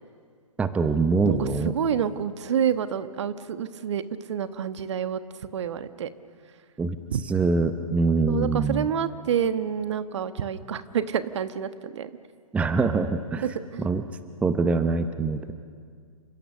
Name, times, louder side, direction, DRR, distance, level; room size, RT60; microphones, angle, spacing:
voice 1, 0.6-1.7 6.8-7.0 7.3-8.9 12.5-13.4 13.8-14.0 14.4-15.5, right 4 dB, 5° right, 10 dB, 0.8 m, -24 dB
voice 2, 1.2-4.0 4.3-5.2 5.5-6.1 7.1-7.2 8.3-12.1 13.4-13.9, right 8 dB, 50° right, 11 dB, 1.3 m, -28 dB
29.0 x 26.5 x 6.7 m, 2.1 s
figure-of-eight pair, 125°, 18 cm